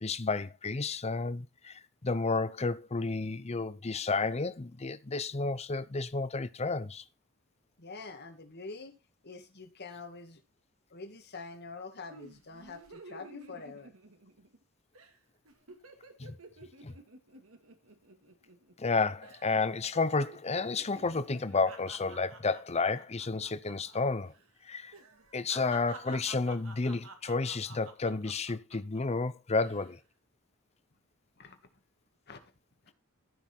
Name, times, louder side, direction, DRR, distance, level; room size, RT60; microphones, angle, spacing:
voice 1, 0.0-7.0 16.2-16.3 16.8-16.9 18.8-24.3 24.6-24.9 25.3-30.0, left 3 dB, 30° left, 0.7 m, -31 dB
voice 2, 7.8-8.9 9.2-10.4 10.9-13.9 31.4-31.6 32.3-32.4, left 4 dB, 50° left, 1.9 m, -45 dB
sound 1, 12.1-14.6 14.9-15.2 15.5-18.9 19.2-19.6 19.9-24.0 24.3-24.4 24.9-29.0 29.5-29.9, right 3 dB, 70° right, 2.2 m, -51 dB
14.0 x 6.1 x 4.5 m
head